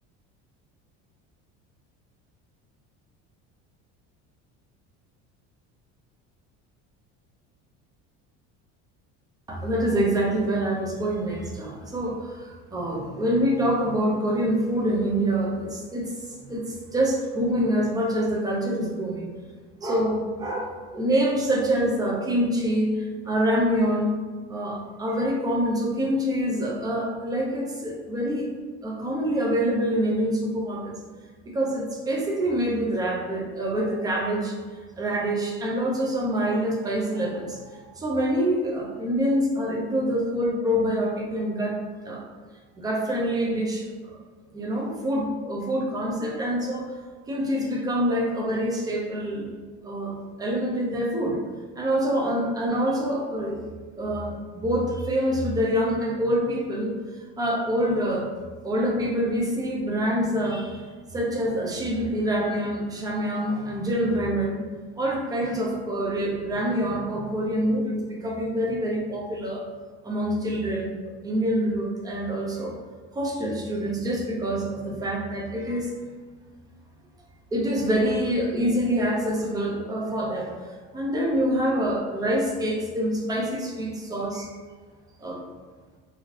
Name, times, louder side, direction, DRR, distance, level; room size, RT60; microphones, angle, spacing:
voice 1, 9.5-19.4 19.8-24.2 24.5-28.5 28.8-30.9 31.5-34.6 35.0-41.8 42.0-42.3 42.8-44.2 44.5-47.0 47.3-49.5 49.8-51.4 51.8-53.6 54.0-56.9 57.4-58.3 58.6-64.6 65.0-69.7 70.0-71.0 71.2-72.7 73.1-75.9 77.5-84.5 85.2-85.4, equal, 10° right, -1 dB, 0.3 m, -26 dB
2.6 x 2.5 x 3.1 m, 1.5 s
cardioid pair, 145°, 33 cm